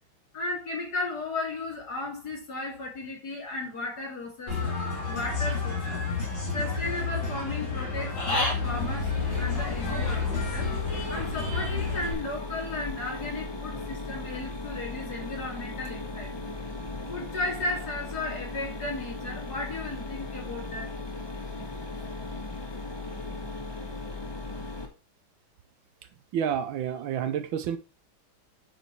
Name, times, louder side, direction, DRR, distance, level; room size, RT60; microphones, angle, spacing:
voice 1, 0.3-4.7 5.0-6.0 6.5-10.7 11.1-16.3 17.1-20.9, left 2 dB, 50° left, 3.2 m, -35 dB
Human voice / Bird, 4.5-12.1, left 4 dB, 70° left, 3.8 m, -30 dB
Mechanisms, 8.6-24.9, left 3 dB, 15° left, 1.4 m, -37 dB
voice 2, 26.3-27.8, right 8 dB, 75° right, 1.5 m, -29 dB
9.1 x 5.0 x 4.6 m
omnidirectional pair, 2.2 m